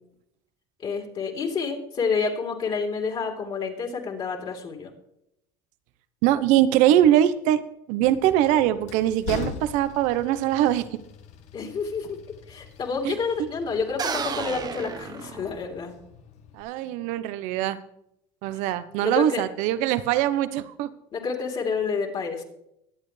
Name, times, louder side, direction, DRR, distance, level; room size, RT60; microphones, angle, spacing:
voice 1, 0.8-4.9 11.5-12.2 12.5-15.9 19.0-19.4 21.1-22.4, left 5 dB, 40° left, 1 dB, 3.4 m, -29 dB
voice 2, 6.2-7.6 7.9-11.0 13.0-13.5 16.5-17.8 18.4-20.9, right 12 dB, 70° right, 13 dB, 1.0 m, -22 dB
Train, 8.0-16.6, left 7 dB, 60° left, 1.4 m, -42 dB
sound 1, 14.0-15.9, right 6 dB, 30° right, 1.0 m, -32 dB
22.5 x 8.6 x 3.3 m, 0.79 s
supercardioid pair, 95°, 13 cm